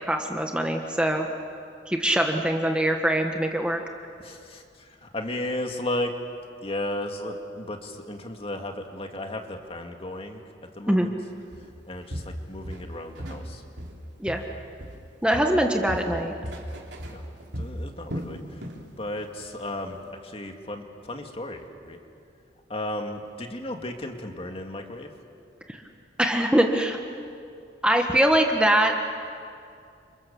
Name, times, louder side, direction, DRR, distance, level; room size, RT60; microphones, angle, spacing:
voice 1, 0.1-1.3 1.9-3.8 10.9-11.1 14.2-14.4 15.2-16.3 25.7-25.8 26.2-27.0 27.8-29.0, right 1 dB, 5° right, 3 dB, 1.4 m, -23 dB
voice 2, 4.2-6.1 6.6-10.4 10.7-11.1 11.9-13.6 17.1-17.2 17.6-18.6 19.0-22.0 22.7-25.1, left 1 dB, 30° left, 4 dB, 2.2 m, -34 dB
Walk footsteps, 11.5-11.7 12.1-13.5 13.8-15.1 15.3-18.9 19.2-19.4 19.9-20.0, equal, 70° right, 3.5 m, -36 dB
30.0 x 27.5 x 7.2 m, 2.4 s
head